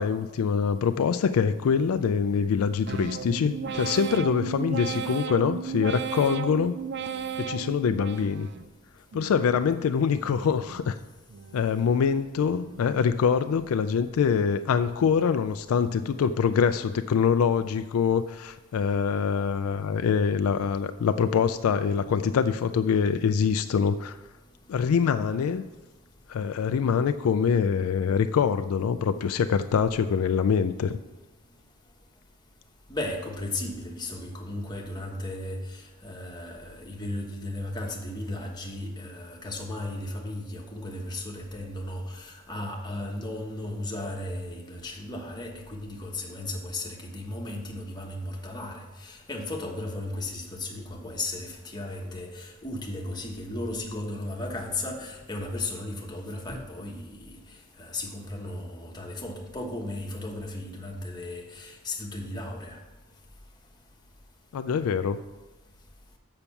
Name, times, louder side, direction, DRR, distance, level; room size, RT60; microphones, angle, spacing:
voice 1, 0.0-6.8 7.4-8.5 9.1-11.0 11.5-24.2 24.7-25.6 26.3-31.0 64.5-65.2, left 6 dB, 75° left, 11 dB, 0.3 m, -24 dB
sound 1, 2.9-8.7 9.1-9.8 10.2-10.9 11.3-11.9 12.4-13.0 13.5-14.0, right 6 dB, 50° right, 0.5 m, -35 dB
voice 2, 32.9-57.4 57.8-62.8, left 2 dB, 20° left, -1 dB, 1.2 m, -35 dB
6.9 x 5.8 x 7.0 m, 1.1 s
head